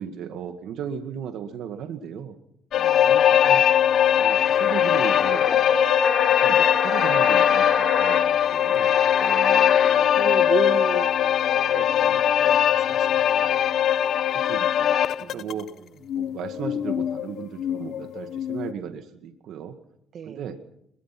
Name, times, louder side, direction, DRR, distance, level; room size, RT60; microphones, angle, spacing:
voice 1, 0.0-2.4 3.1-3.6 4.2-8.9 14.3-14.9 15.3-15.7 16.1-19.8 20.2-20.6, right 8 dB, 80° right, 6 dB, 2.0 m, -36 dB
sound 1, 2.7-15.6 16.1-18.7, left 10 dB, 70° left, 0.9 m, -21 dB
voice 2, 2.8-3.2 9.2-13.7 15.2-15.5 20.1-20.4, right 7 dB, 60° right, 11 dB, 1.7 m, -35 dB
sound 2, 4.2-9.9, left 3 dB, 30° left, 5.5 m, -30 dB
23.5 x 22.5 x 6.1 m, 0.74 s
cardioid pair, 90°, 0 cm